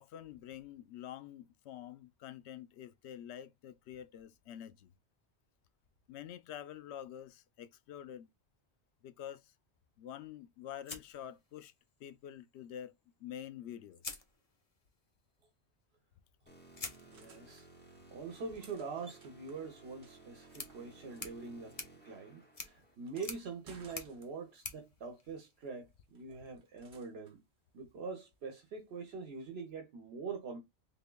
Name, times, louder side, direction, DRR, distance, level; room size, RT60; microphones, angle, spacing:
voice 1, 0.0-4.9 6.1-8.3 9.0-9.4 10.0-11.7 12.0-12.9 13.2-14.0, left 10 dB, 85° left, 0.8 m, -47 dB
sound 1, 10.8-12.0 13.3-13.4 13.9-14.9 16.7-25.9, left 4 dB, 35° left, 0.9 m, -50 dB
sound 2, 16.5-22.9, right 2 dB, 10° left, 1.7 m, -58 dB
sound 3, 16.9-17.7 18.3-21.2 21.5-24.7 26.1-27.4 29.4-29.5, right 4 dB, 60° right, 1.1 m, -61 dB
voice 2, 17.0-21.7 22.0-27.4 27.7-30.6, right 4 dB, 75° right, 1.1 m, -44 dB
3.7 x 3.5 x 2.2 m
omnidirectional pair, 1.1 m